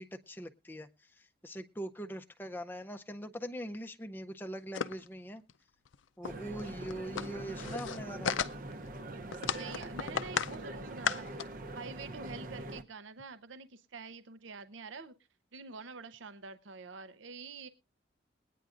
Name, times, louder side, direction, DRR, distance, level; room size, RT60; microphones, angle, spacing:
voice 1, 0.0-5.4 6.2-8.3, equal, 10° left, 6 dB, 0.5 m, -42 dB
sound 1, 4.7-5.1 5.5-5.6 5.9-6.0 6.3-6.4 6.6-8.9 9.3-10.6 10.8-11.4, left 7 dB, 80° left, 0.5 m, -35 dB
sound 2, 6.2-12.8, right 2 dB, 45° right, 0.7 m, -43 dB
voice 2, 9.5-11.4 11.7-15.1 15.5-17.7, right 4 dB, 80° right, 12 dB, 0.7 m, -47 dB
21.0 x 9.3 x 2.5 m, 0.29 s
head